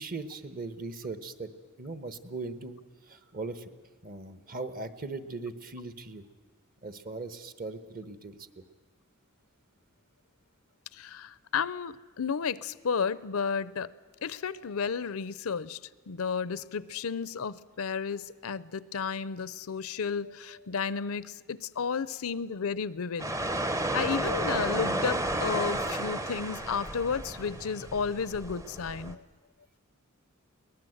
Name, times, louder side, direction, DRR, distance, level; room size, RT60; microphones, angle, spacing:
voice 1, 0.0-1.5 1.8-2.8 3.1-3.7 4.0-6.2 6.8-8.4, right 3 dB, 40° right, 12 dB, 1.1 m, -39 dB
voice 2, 10.9-13.9 14.2-15.8 16.1-23.3 23.9-29.2, left 6 dB, 70° left, 18 dB, 0.6 m, -32 dB
sound 1, 23.2-29.1, right 1 dB, 15° right, 0.7 m, -32 dB
22.0 x 19.0 x 7.9 m, 1.4 s
head